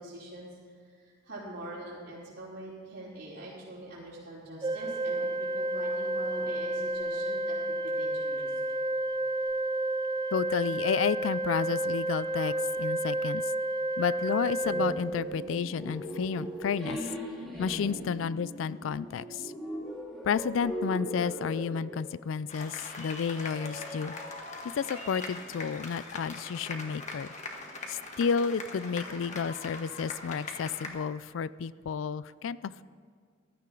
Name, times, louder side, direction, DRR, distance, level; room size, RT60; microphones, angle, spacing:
voice 1, 0.0-8.5 12.3-12.4, right 1 dB, 65° right, -11 dB, 3.4 m, -44 dB
Organ, 4.6-15.7, right 1 dB, 25° right, 0.4 m, -31 dB
voice 2, 10.3-12.5 12.8-13.4 14.0-17.0 17.6-19.5 20.2-24.1 24.8-27.3 27.9-32.8, left 6 dB, 80° left, 18 dB, 0.4 m, -31 dB
sound 1, 14.6-22.0, equal, 5° left, 2.7 m, -39 dB
sound 2, 22.5-30.9, left 2 dB, 35° left, 1.5 m, -41 dB
15.5 x 13.0 x 3.8 m, 2.1 s
head